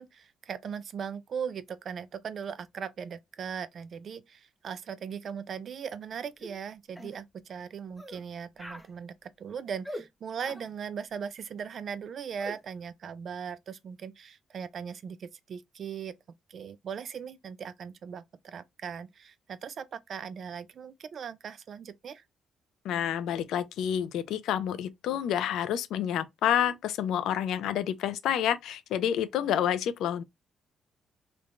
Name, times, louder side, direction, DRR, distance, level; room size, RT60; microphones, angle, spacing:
voice 1, 0.0-16.1 16.5-22.2, right 7 dB, 55° right, 0.3 m, -39 dB
sound 1, 6.4-6.6 7.0-7.2 8.0-8.2 8.6-8.9 9.8-10.1 10.4-10.7 12.4-12.6, equal, 5° left, 0.5 m, -42 dB
voice 2, 22.8-30.2, left 10 dB, 85° left, 0.4 m, -29 dB
3.1 x 2.1 x 2.4 m
cardioid pair, 90°, 0 cm